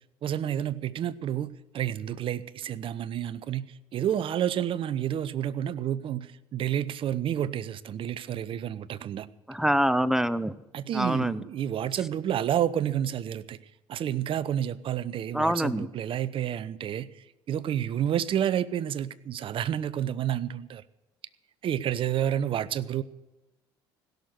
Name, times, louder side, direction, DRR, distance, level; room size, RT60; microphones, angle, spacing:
voice 1, 0.2-3.7 3.9-9.3 10.7-13.6 13.9-20.8 21.6-23.0, right 10 dB, 50° right, 17 dB, 0.8 m, -30 dB
voice 2, 9.5-10.5 10.9-11.4 15.3-15.9, equal, 5° right, 17 dB, 0.8 m, -25 dB
16.5 x 6.6 x 9.3 m, 0.99 s
hypercardioid pair, 70°, 12 cm